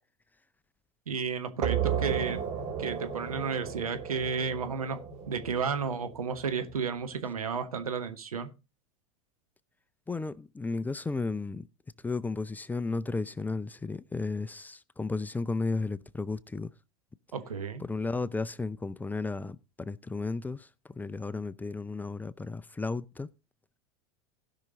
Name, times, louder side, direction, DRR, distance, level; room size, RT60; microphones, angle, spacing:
voice 1, 1.1-2.4 2.8-5.0 5.3-8.5 17.3-17.8, right 6 dB, 85° right, 1.3 m, -32 dB
sound 1, 1.6-7.0, right 8 dB, 40° right, 2.3 m, -34 dB
voice 2, 10.1-11.7 12.0-16.7 17.8-23.3, left 3 dB, 10° left, 0.5 m, -34 dB
16.0 x 5.9 x 3.9 m
hypercardioid pair, 90°, 18 cm